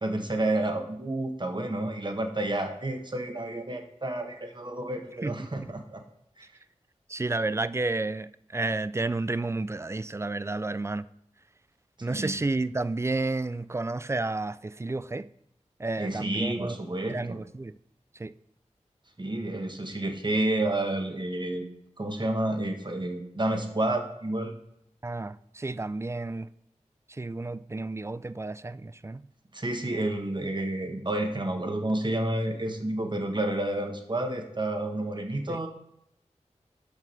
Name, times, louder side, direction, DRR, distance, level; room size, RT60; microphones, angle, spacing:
voice 1, 0.0-6.0 6.4-6.5 12.1-12.3 16.0-17.4 19.2-21.7 22.0-24.5 29.5-35.7, right 1 dB, 40° right, 1.3 m, -30 dB
voice 2, 5.2-5.7 7.1-11.1 12.0-15.3 15.8-16.8 17.1-17.8 18.2-18.3 25.0-26.5 27.1-29.2 35.5-35.6, right 2 dB, 20° right, 0.3 m, -31 dB
7.3 x 5.9 x 5.4 m
cardioid pair, 45°, 13 cm